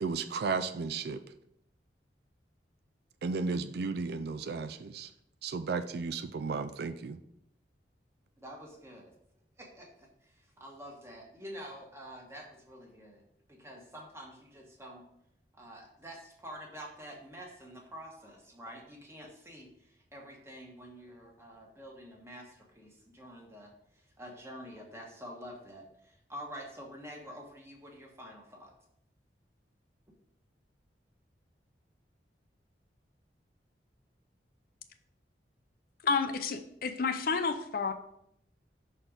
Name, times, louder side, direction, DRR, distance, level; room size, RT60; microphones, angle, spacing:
voice 1, 0.0-1.2 3.2-5.1 5.4-7.2, right 4 dB, 60° right, 10 dB, 0.4 m, -34 dB
voice 2, 8.4-9.1 9.6-13.2 13.5-15.0 15.5-28.7, equal, 15° right, 0 dB, 1.3 m, -48 dB
voice 3, 36.0-37.9, left 5 dB, 55° left, 8 dB, 0.5 m, -30 dB
5.9 x 4.3 x 5.1 m, 0.75 s
head